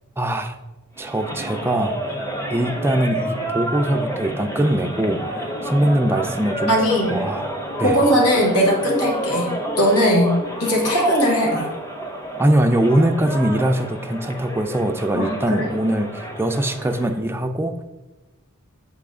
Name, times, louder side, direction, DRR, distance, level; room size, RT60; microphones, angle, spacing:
voice 1, 0.2-0.6 1.0-1.9 2.5-6.7 7.1-7.5 7.8-8.0 12.4-17.7, right 1 dB, 10° right, 6 dB, 0.4 m, -22 dB
sound 1, 0.9-17.2, right 1 dB, 15° left, 0.8 m, -29 dB
voice 2, 6.7-7.2 7.8-9.5 9.8-11.7 15.1-15.7, equal, 90° left, -2 dB, 2.0 m, -19 dB
7.8 x 4.1 x 3.6 m, 1.1 s
head